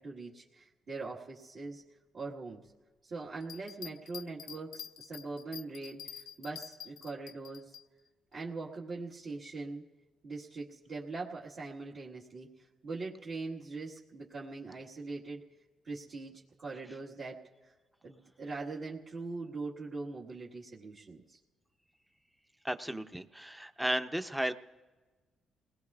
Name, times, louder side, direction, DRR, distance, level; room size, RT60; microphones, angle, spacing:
voice 1, 0.0-1.8 2.1-2.6 3.0-7.8 8.3-9.8 10.2-12.5 12.8-15.4 15.8-16.3 16.6-17.5 18.0-21.4, right 3 dB, 55° right, -7 dB, 1.6 m, -42 dB
sound 1, 3.4-7.8, left 9 dB, 85° left, 0.5 m, -47 dB
voice 2, 22.6-24.5, right 1 dB, 5° right, 10 dB, 0.6 m, -34 dB
29.5 x 19.0 x 2.4 m, 1.3 s
cardioid pair, 90°, 0 cm